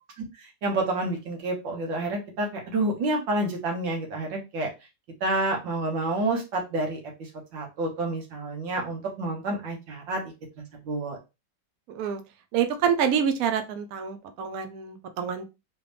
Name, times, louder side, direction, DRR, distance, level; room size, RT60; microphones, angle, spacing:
voice 1, 0.6-4.7 5.2-10.2 10.6-11.2, right 2 dB, 90° right, 1 dB, 2.0 m, -29 dB
voice 2, 11.9-12.2 12.5-15.5, right 7 dB, 65° right, 8 dB, 1.0 m, -27 dB
3.9 x 3.3 x 3.3 m, 0.26 s
omnidirectional pair, 2.0 m